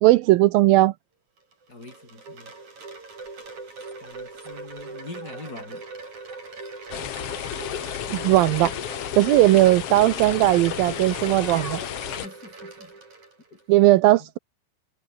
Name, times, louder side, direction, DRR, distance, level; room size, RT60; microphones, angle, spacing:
voice 1, 0.0-0.9 8.1-8.7 9.2-11.8 13.7-14.4, right 17 dB, 80° right, 2.4 m, -18 dB
Wind chime, 1.4-13.6, right 3 dB, 50° right, 8.4 m, -40 dB
voice 2, 1.7-2.5 4.0-5.8 12.1-12.9 13.5-13.6 14.2-14.3, left 2 dB, 25° left, 5.4 m, -43 dB
sound 1, 3.1-9.3 10.1-11.9, right 2 dB, 15° right, 3.5 m, -47 dB
sound 2, 6.9-12.3, left 11 dB, 85° left, 1.3 m, -32 dB
omnidirectional pair, 4.4 m